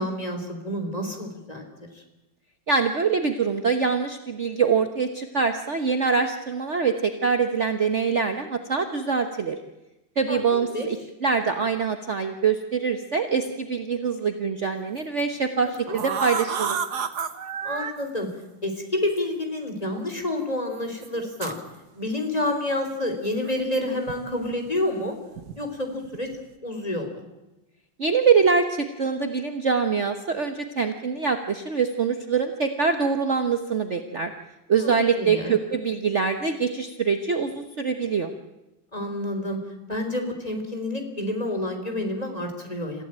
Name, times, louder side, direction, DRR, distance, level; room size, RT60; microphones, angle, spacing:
voice 1, 0.0-2.0 10.3-10.9 15.6-16.0 17.6-18.3 18.6-21.6 22.0-25.2 25.6-26.3 26.6-27.2 34.8-35.5 38.9-39.6 39.9-43.0, left 1 dB, 20° left, 5 dB, 3.6 m, -29 dB
voice 2, 2.7-9.6 10.2-16.8 28.0-34.3 34.7-38.3, right 5 dB, 40° right, 7 dB, 1.3 m, -24 dB
sound 1, 15.0-15.2 15.7-17.9 19.1-19.2 19.9-20.0 21.0-21.6 23.4-24.2 24.4-24.8 25.3-25.6 26.0-26.3, right 7 dB, 60° right, 1.8 m, -31 dB
26.5 x 15.5 x 8.8 m, 1.0 s
omnidirectional pair, 2.1 m